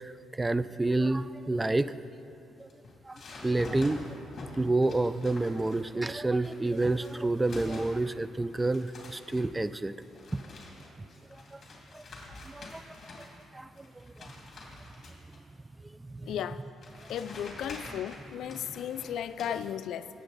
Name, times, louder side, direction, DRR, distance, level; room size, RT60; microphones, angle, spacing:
voice 1, 0.0-1.9 2.6-2.7 3.1-4.2 4.6-9.9 10.3-10.4 11.5-11.6 11.9-12.0 12.5-12.8 13.5-13.9 16.1-16.3 17.9-18.0 18.7-18.8, right 2 dB, 15° right, 15 dB, 0.3 m, -29 dB
sound 1, 2.6-6.0 6.4-8.2 8.5-13.4 13.8-15.4 16.3-16.4 16.8-19.5, left 2 dB, 45° left, 2.4 m, -46 dB
voice 2, 16.3-16.6 17.1-20.1, left 9 dB, 80° left, 13 dB, 0.3 m, -35 dB
18.0 x 8.0 x 4.0 m, 2.6 s
cardioid pair, 90°, 0 cm